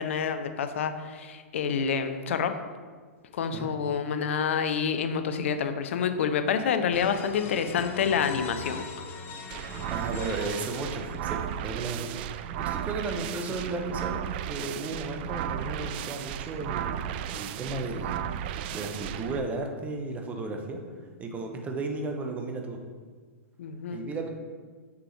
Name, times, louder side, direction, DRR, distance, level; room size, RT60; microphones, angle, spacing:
voice 1, 0.0-2.5 3.3-8.9 23.6-24.0, left 7 dB, 60° left, 9 dB, 0.6 m, -28 dB
sound 1, 6.9-11.5, left 4 dB, 25° left, 0.7 m, -41 dB
sound 2, 9.5-19.4, right 10 dB, 45° right, 0.3 m, -34 dB
voice 2, 9.9-14.2 14.4-18.2 18.5-20.8 21.2-22.8 23.9-24.3, right 3 dB, 20° right, 3 dB, 1.0 m, -34 dB
6.9 x 6.7 x 3.2 m, 1.5 s
figure-of-eight pair, 110°, 8 cm